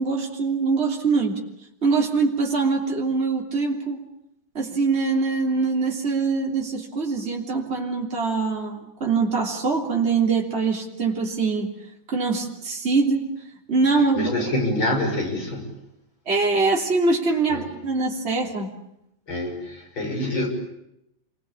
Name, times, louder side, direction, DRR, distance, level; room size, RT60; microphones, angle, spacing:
voice 1, 0.0-1.3 1.8-4.0 4.6-11.7 12.1-13.2 13.7-14.3 16.3-18.7, right 4 dB, 30° right, -1 dB, 3.6 m, -23 dB
voice 2, 14.2-15.8 17.5-17.6 19.3-20.5, left 1 dB, 90° left, 2 dB, 7.4 m, -26 dB
28.5 x 22.5 x 8.6 m, 0.82 s
omnidirectional pair, 2.1 m